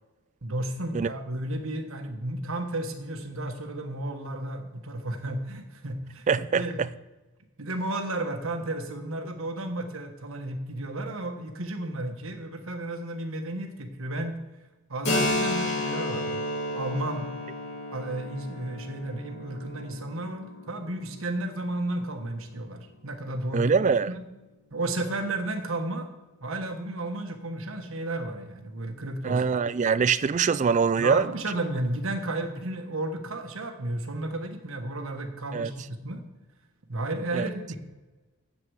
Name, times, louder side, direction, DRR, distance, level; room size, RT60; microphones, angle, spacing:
voice 1, 0.4-6.2 6.5-6.8 7.6-14.4 14.9-16.4 16.7-17.3 17.9-23.7 24.1-24.2 24.7-26.1 26.4-29.4 31.0-36.2 36.9-37.8, right 1 dB, 65° right, 1.4 m, -33 dB
voice 2, 6.3-6.9 23.5-24.1 29.2-31.3 35.5-35.7 37.3-37.5, right 5 dB, 35° right, 0.3 m, -23 dB
Keyboard (musical), 15.0-22.4, left 1 dB, 50° left, 3.4 m, -32 dB
7.9 x 7.7 x 8.1 m
head